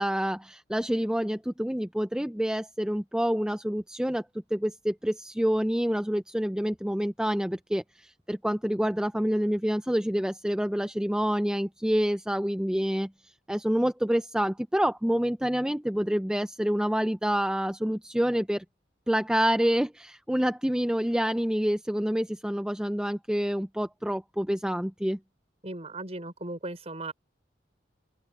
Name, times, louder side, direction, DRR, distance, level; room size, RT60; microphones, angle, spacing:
voice 1, 0.0-4.2 4.5-13.1 13.5-18.6 19.1-25.2, equal, 5° right, 0.6 m, -27 dB
voice 2, 25.6-27.1, right 2 dB, 35° right, 6.1 m, -37 dB
open air
head